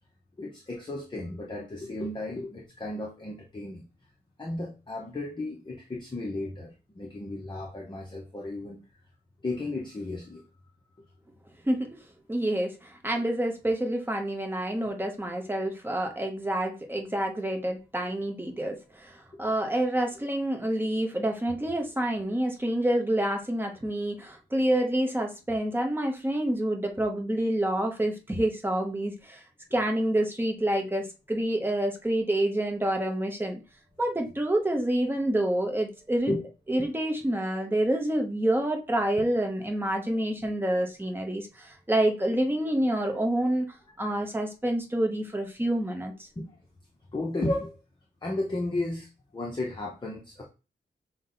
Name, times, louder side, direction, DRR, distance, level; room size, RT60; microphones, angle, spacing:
voice 1, 0.4-3.8 4.4-8.8 9.4-10.4 11.0-11.1 13.2-13.3 19.3-19.4 36.3-36.4 36.8-36.9 43.9-44.3 46.4-46.6 47.1-47.8 48.2-50.5, left 2 dB, 25° left, -1 dB, 0.8 m, -34 dB
voice 2, 11.7-12.0 12.3-29.4 29.7-33.6 34.0-36.3 36.7-43.7 44.0-46.3, right 1 dB, 10° right, 2 dB, 0.9 m, -28 dB
5.9 x 2.2 x 3.8 m, 0.30 s
wide cardioid pair, 135°, 19 cm